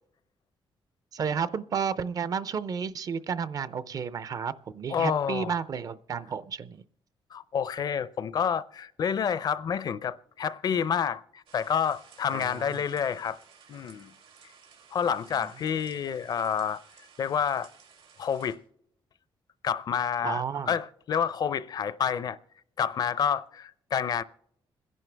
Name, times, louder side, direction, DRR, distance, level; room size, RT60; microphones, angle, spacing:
voice 1, 1.1-6.8 12.3-12.8 15.4-15.5 20.2-20.7, right 6 dB, 45° right, 0.5 m, -32 dB
voice 2, 4.9-5.5 7.3-13.4 13.7-14.1 14.9-16.8 17.2-17.7 18.2-18.6 19.6-22.4 22.8-24.2, left 7 dB, 50° left, 0.5 m, -29 dB
sound 1, 11.5-18.6, right 6 dB, 90° right, 3.4 m, -55 dB
27.0 x 11.0 x 3.4 m
wide cardioid pair, 170°, 9 cm